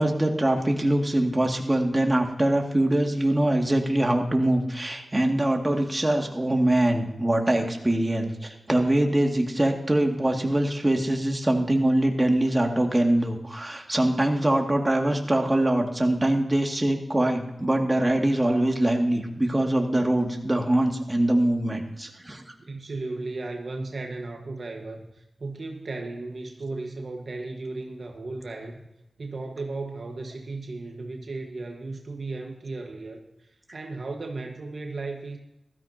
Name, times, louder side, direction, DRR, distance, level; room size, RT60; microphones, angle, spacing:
voice 1, 0.0-22.5, right 1 dB, 25° right, 2 dB, 2.2 m, -23 dB
voice 2, 22.6-28.9 29.2-35.4, right 3 dB, 65° right, 3 dB, 1.4 m, -35 dB
15.5 x 13.5 x 2.9 m, 0.90 s
cardioid pair, 50°, 0 cm